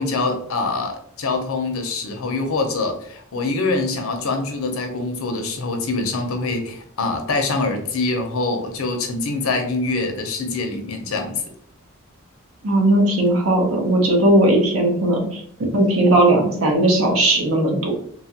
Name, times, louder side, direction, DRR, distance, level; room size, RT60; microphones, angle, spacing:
voice 1, 0.0-11.4, left 3 dB, 80° left, 4 dB, 0.6 m, -24 dB
voice 2, 12.6-15.4 15.7-17.9, right 1 dB, 75° right, 1 dB, 0.8 m, -17 dB
2.9 x 2.3 x 2.8 m, 0.65 s
head